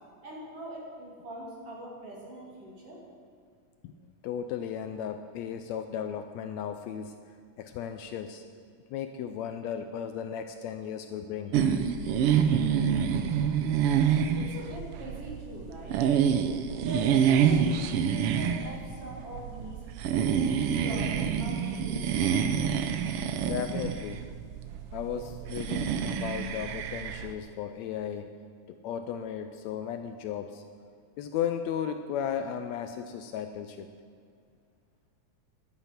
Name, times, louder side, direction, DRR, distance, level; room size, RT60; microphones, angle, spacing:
voice 1, 0.2-3.0 14.3-15.9 16.7-19.8 20.2-22.2, right 1 dB, 50° right, -4 dB, 3.6 m, -41 dB
voice 2, 4.2-7.1 7.6-8.4 8.9-11.6 23.4-24.2 24.9-28.3 28.7-30.6 31.2-33.9, left 8 dB, 75° left, 8 dB, 1.7 m, -35 dB
sound 1, 11.5-27.3, right 8 dB, 80° right, 1.2 m, -27 dB
12.5 x 11.0 x 5.9 m, 2.2 s
omnidirectional pair, 3.4 m